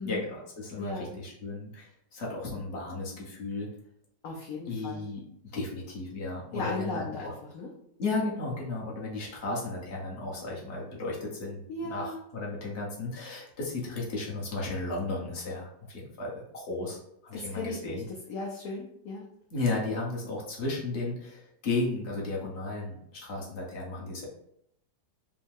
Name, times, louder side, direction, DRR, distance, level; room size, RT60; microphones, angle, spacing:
voice 1, 0.0-3.7 4.7-5.2 5.5-7.3 8.0-18.0 19.5-24.3, left 3 dB, 45° left, -3 dB, 1.3 m, -34 dB
voice 2, 0.8-1.2 4.2-5.1 6.5-7.7 11.7-12.3 17.3-19.2, left 3 dB, 65° left, -2 dB, 1.1 m, -36 dB
5.2 x 2.3 x 3.5 m, 0.74 s
omnidirectional pair, 1.9 m